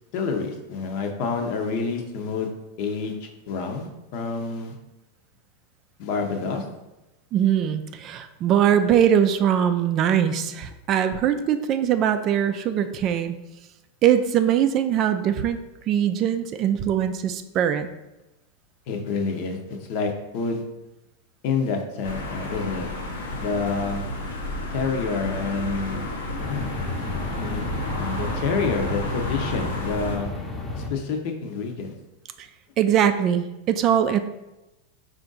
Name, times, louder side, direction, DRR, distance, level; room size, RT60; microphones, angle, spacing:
voice 1, 0.1-2.5 2.8-4.7 6.0-6.6 18.9-20.6 21.4-22.9 23.3-24.0 24.7-26.0 26.5-26.6 27.4-27.6 27.9-30.3 30.8-31.9, left 4 dB, 55° left, 4 dB, 0.8 m, -28 dB
voice 2, 7.3-13.4 14.0-15.6 15.9-17.9 32.4-32.5 32.8-34.2, right 9 dB, 40° right, 9 dB, 0.3 m, -21 dB
sound 1, 22.0-30.2, left 1 dB, 90° left, 0.8 m, -31 dB
sound 2, 26.4-30.9, left 2 dB, 15° left, 0.7 m, -32 dB
4.4 x 2.5 x 3.9 m, 0.98 s
hypercardioid pair, 120°, 0 cm